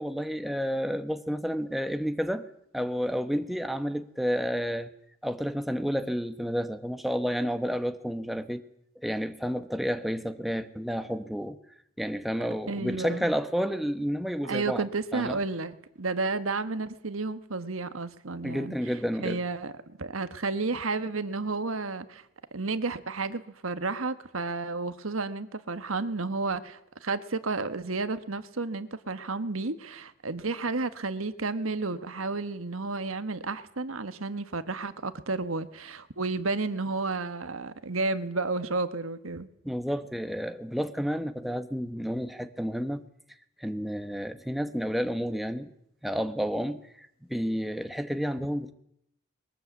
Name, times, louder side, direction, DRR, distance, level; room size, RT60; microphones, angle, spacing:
voice 1, 0.0-2.5 2.7-4.9 5.2-8.6 9.0-11.6 12.0-14.9 15.1-15.4 18.4-19.4 39.6-43.0 43.6-45.7 46.0-48.7, equal, ahead, 1.0 m, -30 dB
voice 2, 12.7-13.3 14.4-18.7 19.2-22.2 22.5-39.5, right 3 dB, 85° right, 1.4 m, -32 dB
22.0 x 18.5 x 8.3 m
head